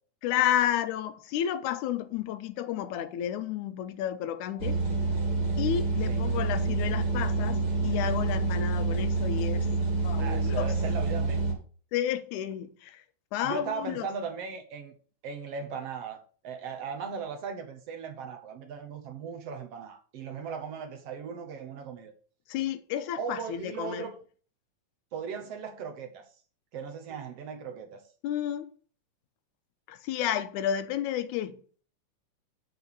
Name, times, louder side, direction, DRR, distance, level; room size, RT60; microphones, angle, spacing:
voice 1, 0.2-4.8 5.6-9.7 10.0-10.7 11.9-13.0 13.3-14.1 22.5-24.1 28.2-28.7 29.9-31.6, left 10 dB, 90° left, 2.1 m, -31 dB
sound 1, 4.6-11.5, right 3 dB, 20° right, 1.1 m, -27 dB
voice 2, 10.2-11.6 13.4-15.0 15.2-16.2 16.4-22.1 23.2-24.1 25.1-26.2 26.7-28.0, right 6 dB, 60° right, 1.9 m, -38 dB
8.8 x 4.5 x 6.6 m
omnidirectional pair, 3.5 m